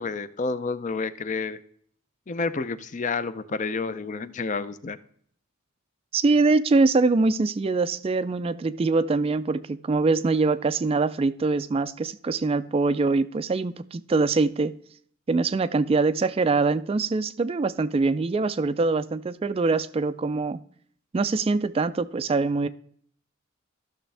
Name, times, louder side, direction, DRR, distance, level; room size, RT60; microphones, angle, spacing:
voice 1, 0.0-1.6 2.3-5.0, left 4 dB, 35° left, 0.5 m, -29 dB
voice 2, 6.1-14.8 15.3-20.6 21.1-22.7, right 3 dB, 25° right, 0.3 m, -23 dB
14.0 x 6.4 x 3.3 m
head